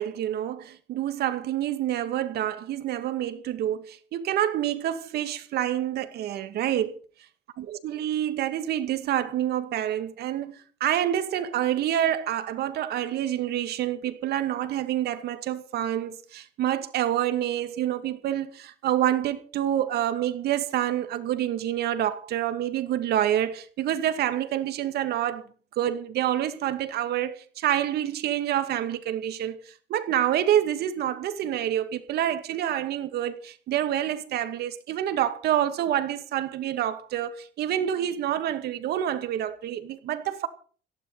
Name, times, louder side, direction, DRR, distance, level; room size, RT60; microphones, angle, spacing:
voice 1, 0.0-7.0 7.6-25.4 25.8-40.5, right 11 dB, 70° right, 2.3 m, -27 dB
17.5 x 15.5 x 4.2 m
cardioid pair, 110°, 17 cm